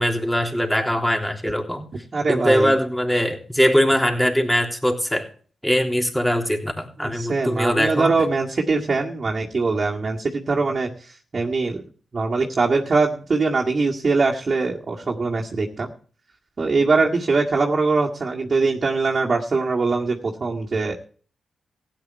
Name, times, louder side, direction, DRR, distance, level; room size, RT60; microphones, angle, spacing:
voice 1, 0.0-1.9 2.3-5.3 5.6-8.1, equal, 5° left, 3 dB, 3.4 m, -21 dB
voice 2, 2.1-2.7 7.0-11.8 12.1-15.9 16.6-20.9, right 3 dB, 50° right, -2 dB, 2.1 m, -22 dB
16.0 x 9.5 x 4.7 m, 0.42 s
supercardioid pair, 40°, 0 cm